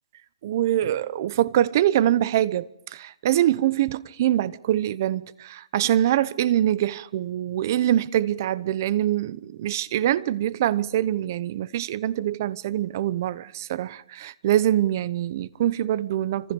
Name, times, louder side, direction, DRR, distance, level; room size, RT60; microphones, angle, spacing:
voice 1, 0.4-16.5, right 12 dB, 35° right, 0.9 m, -24 dB
28.5 x 26.0 x 5.4 m
hypercardioid pair, 165°, 3 cm